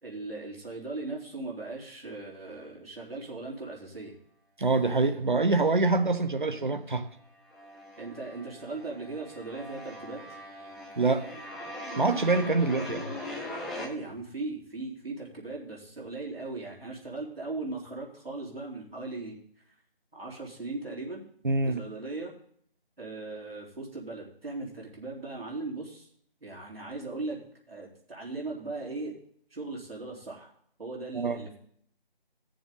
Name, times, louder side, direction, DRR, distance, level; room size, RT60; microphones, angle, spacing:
voice 1, 0.0-4.1 8.0-10.2 13.7-19.4 20.1-21.2 21.6-22.3 23.0-26.1 26.4-27.4 27.7-29.1 29.5-30.5 30.8-31.6, right 3 dB, 75° right, -3 dB, 4.0 m, -38 dB
voice 2, 4.6-7.1 11.0-11.3 12.0-13.1 21.4-21.8 31.1-31.4, right 3 dB, 55° right, 9 dB, 1.1 m, -25 dB
sound 1, 6.3-6.4 6.7-13.9, left 1 dB, ahead, 0.5 m, -41 dB
16.5 x 7.0 x 3.9 m, 0.64 s
figure-of-eight pair, 165°, 30 cm